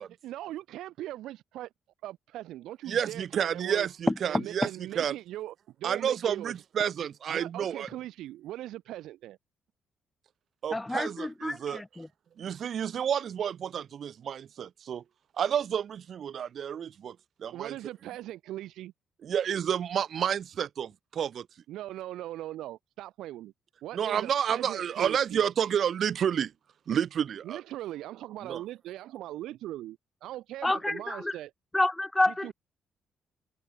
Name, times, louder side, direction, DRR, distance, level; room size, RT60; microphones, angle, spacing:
voice 1, 0.2-1.7 2.0-3.9 4.3-6.5 7.3-9.4 17.5-18.9 21.7-23.5 23.8-25.4 27.4-31.5 32.3-32.5, right 14 dB, 85° right, 2.7 m, -40 dB
voice 2, 2.9-4.7 5.0-5.1 5.8-7.9 10.6-11.8 12.4-15.0 15.4-17.7 19.2-21.5 23.9-26.5 26.9-27.6 28.5-28.6, right 8 dB, 60° right, 0.8 m, -30 dB
voice 3, 10.7-12.1 30.6-31.3 31.7-32.5, left 2 dB, 10° left, 1.8 m, -29 dB
cardioid pair, 90°, 0 cm